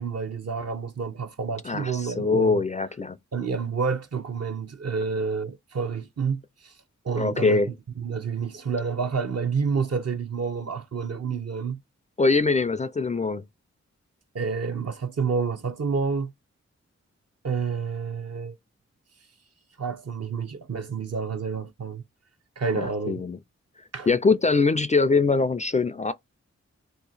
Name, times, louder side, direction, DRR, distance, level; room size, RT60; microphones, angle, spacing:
voice 1, 0.0-2.6 3.3-6.7 7.0-7.6 8.0-11.8 14.3-16.3 17.4-18.6 19.8-22.0 22.6-23.2 23.9-24.1, right 5 dB, 55° right, 0.7 m, -29 dB
voice 2, 1.6-3.2 7.2-7.7 12.2-13.4 22.7-23.4 24.1-26.1, left 4 dB, 25° left, 0.3 m, -23 dB
2.8 x 2.3 x 4.0 m
cardioid pair, 45°, 29 cm